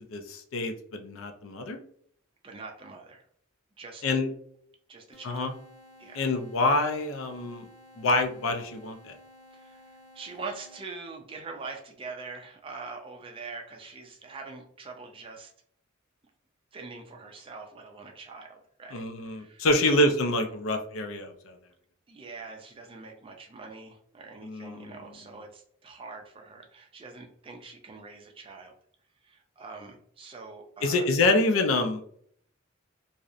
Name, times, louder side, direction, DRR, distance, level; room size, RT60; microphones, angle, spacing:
voice 1, 0.1-1.8 4.0-4.3 5.2-5.5 6.1-7.7 8.0-9.1 18.9-21.6 24.4-24.9 30.8-32.0, left 2 dB, 80° left, 6 dB, 0.4 m, -26 dB
voice 2, 2.4-3.2 3.8-4.2 4.9-5.6 6.0-6.3 9.5-15.5 16.7-20.1 22.1-28.7 29.2-31.1, right 4 dB, 25° right, 2 dB, 0.4 m, -44 dB
sound 1, 5.1-11.1, left 1 dB, 50° left, 0.8 m, -54 dB
2.6 x 2.0 x 2.4 m, 0.63 s
head